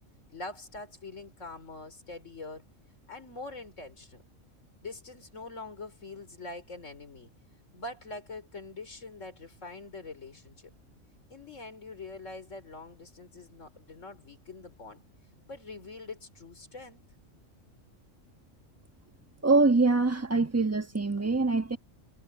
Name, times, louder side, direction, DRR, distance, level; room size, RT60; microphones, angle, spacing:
voice 1, 0.3-2.6 3.1-4.2 4.8-7.3 7.7-10.7 11.3-15.0 15.5-17.0, left 3 dB, 70° left, 4.5 m, -44 dB
voice 2, 19.4-21.8, right 3 dB, 10° right, 1.1 m, -24 dB
omnidirectional pair, 1.4 m